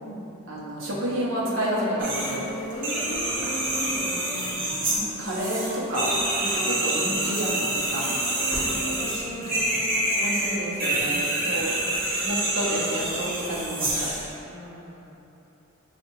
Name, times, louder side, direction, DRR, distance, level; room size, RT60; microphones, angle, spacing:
voice 1, 0.5-2.5 4.9-6.2 6.4-8.1 10.2-11.2 11.5-11.7 12.2-14.1, right 1 dB, 70° right, -6 dB, 0.8 m, -29 dB
Wind instrument woodwind instrument, 1.4-10.9, equal, 10° left, 0.6 m, -38 dB
sound 1, 2.0-2.4 2.7-14.3, right 1 dB, 40° right, 0.9 m, -27 dB
voice 2, 2.7-4.6 8.4-10.1 10.9-11.6 14.4-15.1, left 1 dB, 70° left, -3 dB, 0.6 m, -40 dB
sound 2, 8.5-9.6 13.5-13.6, equal, 50° left, 1.4 m, -38 dB
5.6 x 2.4 x 2.9 m, 2.9 s
head